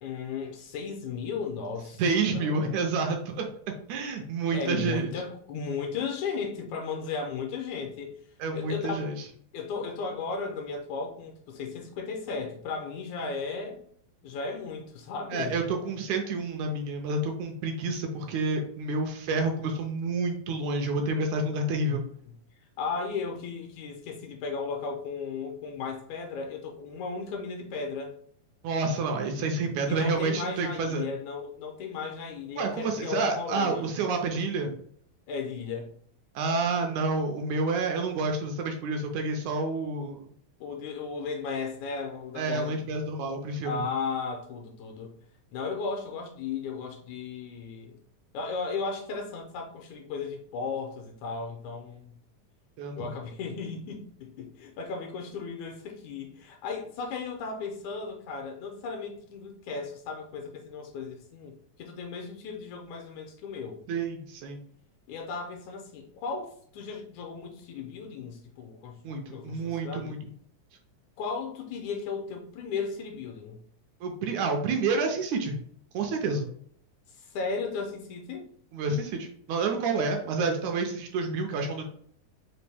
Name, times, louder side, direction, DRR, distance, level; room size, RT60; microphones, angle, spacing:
voice 1, 0.0-2.0 2.3-2.9 4.5-8.2 8.5-9.1 9.5-13.8 14.2-15.6 22.3-22.4 22.8-28.1 29.9-33.9 35.3-35.9 40.6-42.8 43.6-45.1 45.5-48.0 48.3-52.2 53.0-63.8 65.1-69.0 69.3-70.2 71.2-73.6 77.1-78.5, left 5 dB, 80° left, 2 dB, 1.8 m, -35 dB
voice 2, 2.0-3.5 3.9-5.1 8.4-9.2 15.3-22.0 28.6-31.1 32.6-34.8 36.4-40.3 42.4-43.8 52.8-53.1 63.9-64.6 69.0-70.3 74.0-75.6 75.9-76.5 78.7-81.8, right 3 dB, 80° right, 3 dB, 1.8 m, -29 dB
5.2 x 2.6 x 3.3 m, 0.62 s
omnidirectional pair, 3.6 m